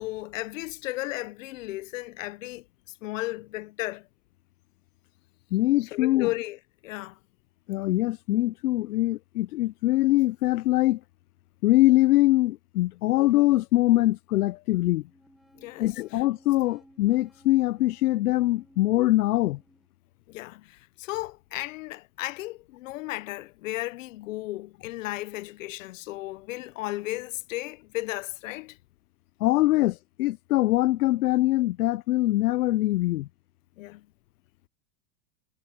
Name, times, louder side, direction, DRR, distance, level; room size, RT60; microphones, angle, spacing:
voice 1, 0.0-2.7 3.0-4.1 5.8-7.2 15.5-16.2 20.3-28.8 33.8-34.1, left 19 dB, 60° left, 1.0 m, -35 dB
voice 2, 5.5-6.3 7.7-11.0 11.6-15.0 15.8-19.6 29.4-33.3, left 17 dB, 80° left, 0.6 m, -23 dB
sound 1, 14.7-19.9, equal, ahead, 1.0 m, -58 dB
supercardioid pair, 150°, 45 cm